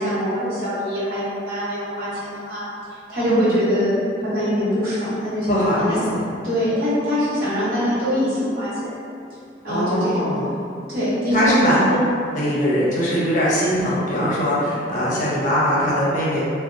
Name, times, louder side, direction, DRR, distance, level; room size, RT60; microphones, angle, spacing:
voice 1, 0.0-2.6 2.9-6.0 6.4-8.9 9.6-10.3 10.9-11.7, equal, 55° right, -12 dB, 0.9 m, -23 dB
voice 2, 5.5-6.3 9.7-10.5 11.3-12.0 12.3-16.4, equal, 45° left, -8 dB, 0.6 m, -21 dB
2.6 x 2.0 x 2.4 m, 2.4 s
head